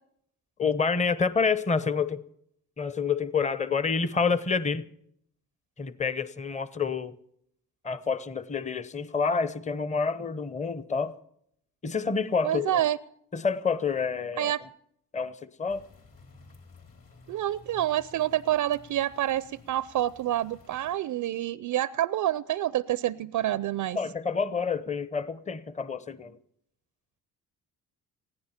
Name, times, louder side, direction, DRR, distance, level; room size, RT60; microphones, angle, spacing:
voice 1, 0.6-2.2 2.8-4.8 5.8-7.1 7.8-11.2 11.8-12.8 13.3-14.5 15.1-15.9 24.0-26.4, left 5 dB, 15° left, 15 dB, 0.8 m, -28 dB
voice 2, 12.4-13.0 14.4-14.6 17.3-24.0, right 12 dB, 50° right, 18 dB, 0.5 m, -28 dB
sound 1, 15.7-21.0, left 3 dB, 50° left, 3.1 m, -54 dB
20.0 x 15.0 x 4.4 m, 0.72 s
supercardioid pair, 65°, 40 cm